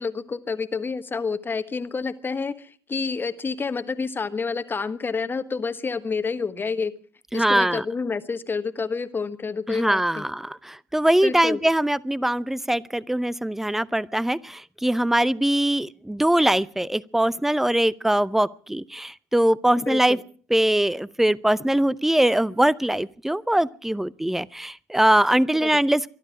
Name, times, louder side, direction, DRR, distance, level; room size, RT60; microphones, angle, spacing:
voice 1, 0.0-6.9 7.3-10.3 11.2-11.6 19.8-20.2 25.6-25.8, left 4 dB, 25° left, 11 dB, 1.3 m, -29 dB
voice 2, 7.3-7.8 9.7-20.2 20.5-26.1, right 1 dB, 5° right, 21 dB, 0.7 m, -22 dB
24.5 x 12.0 x 4.9 m, 0.43 s
figure-of-eight pair, 55°, 8 cm